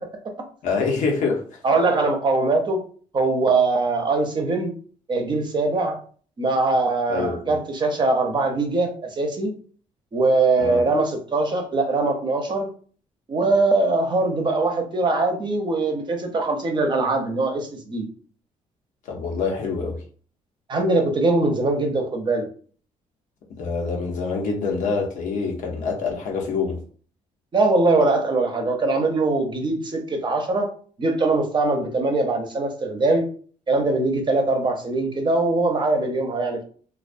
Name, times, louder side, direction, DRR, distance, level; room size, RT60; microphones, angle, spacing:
voice 1, 0.6-1.4 7.1-7.5 10.6-10.8 19.1-20.0 23.6-26.8, left 4 dB, 75° left, 0.7 m, -25 dB
voice 2, 1.6-2.8 3.1-4.7 5.1-6.0 6.4-9.5 10.1-12.7 13.3-18.1 20.7-22.5 27.5-30.7 31.0-33.3 33.7-36.6, right 3 dB, 35° right, 0.6 m, -22 dB
2.3 x 2.2 x 2.5 m
cardioid pair, 85°, 13 cm